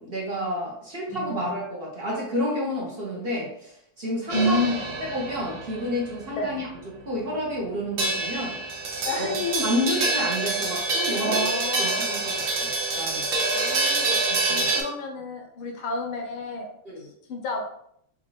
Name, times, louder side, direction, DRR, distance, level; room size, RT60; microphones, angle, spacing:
voice 1, 0.0-4.6 5.1-6.7 7.1-8.5 9.2-9.3 9.6-11.4 11.8-13.3 14.3-14.7 16.8-17.1, equal, 45° right, -4 dB, 0.7 m, -30 dB
voice 2, 1.1-1.5 4.3-4.8 6.4-6.6 9.0-9.6 11.2-12.1 13.5-16.7 17.3-17.7, left 1 dB, 75° left, 2 dB, 1.6 m, -29 dB
sound 1, 4.3-14.8, right 2 dB, 80° right, 0.6 m, -27 dB
5.1 x 2.4 x 3.2 m, 0.69 s
omnidirectional pair, 2.4 m